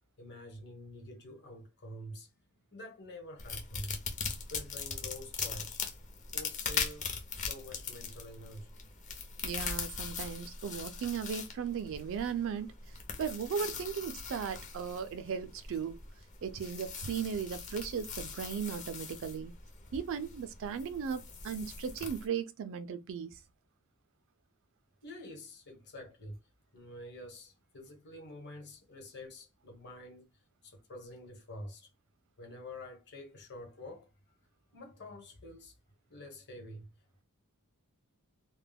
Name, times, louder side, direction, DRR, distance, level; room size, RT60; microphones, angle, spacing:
voice 1, 0.2-2.3 2.7-3.9 4.5-5.8 6.3-8.7 25.0-26.4 26.7-30.3 30.6-31.9 32.4-34.1 34.7-35.7 36.1-36.9, left 1 dB, 50° left, 1.1 m, -47 dB
sound 1, 3.4-22.2, left 5 dB, 35° left, 0.6 m, -41 dB
voice 2, 9.4-12.7 13.2-16.0 16.4-19.5 19.9-23.4, right 7 dB, 60° right, 0.3 m, -36 dB
2.1 x 2.1 x 3.4 m
head